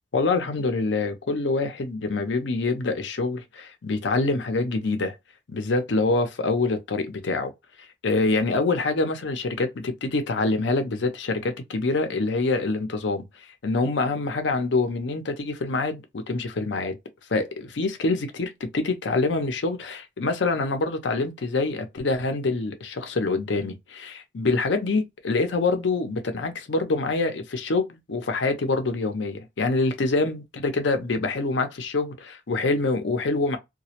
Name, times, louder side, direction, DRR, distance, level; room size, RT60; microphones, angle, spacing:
voice 1, 0.1-5.1 5.5-7.5 8.0-13.2 13.6-17.0 17.3-33.6, left 3 dB, 75° left, 0.5 m, -25 dB
2.2 x 2.0 x 2.8 m
head